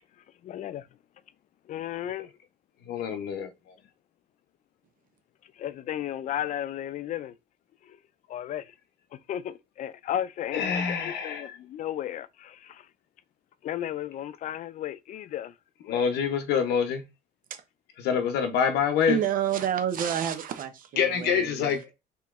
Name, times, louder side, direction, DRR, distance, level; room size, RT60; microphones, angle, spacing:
voice 1, 0.4-0.8 1.7-2.3 5.6-7.3 8.3-8.6 9.3-12.8 13.6-15.5 15.9-16.0, left 11 dB, 50° left, 0.4 m, -34 dB
voice 2, 2.9-3.5 10.5-11.6 15.9-17.1 18.0-19.2 21.0-21.9, left 7 dB, 75° left, 0.7 m, -26 dB
voice 3, 19.1-21.7, right 9 dB, 55° right, 0.7 m, -29 dB
2.9 x 2.8 x 3.5 m
cardioid pair, 110°, 17 cm